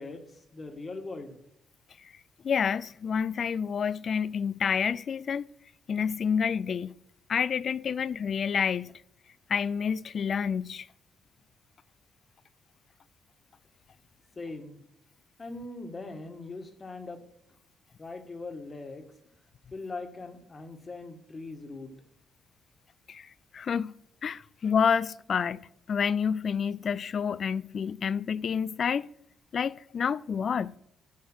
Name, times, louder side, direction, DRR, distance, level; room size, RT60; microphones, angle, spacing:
voice 1, 0.0-1.3 14.3-14.8 15.4-17.2 18.0-19.0 19.7-21.9, left 3 dB, 30° left, 1.7 m, -40 dB
voice 2, 2.4-5.5 5.9-6.9 7.3-9.0 9.5-10.9 23.1-23.9 24.2-29.1 29.5-30.8, left 7 dB, 50° left, 0.3 m, -29 dB
12.0 x 5.1 x 6.2 m
cardioid pair, 90°, 0 cm